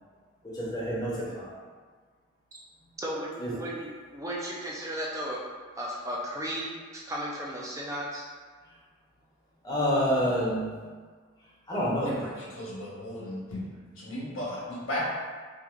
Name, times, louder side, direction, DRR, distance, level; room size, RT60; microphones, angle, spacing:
voice 1, 0.5-1.6 3.4-3.5 9.6-10.7 11.7-12.2, equal, 20° left, -7 dB, 0.7 m, -28 dB
voice 2, 3.0-5.4 5.8-8.2, equal, 15° right, -4 dB, 0.4 m, -35 dB
voice 3, 12.0-13.7 14.0-15.0, left 1 dB, 85° left, -6 dB, 1.2 m, -36 dB
4.4 x 2.5 x 2.4 m, 1.5 s
head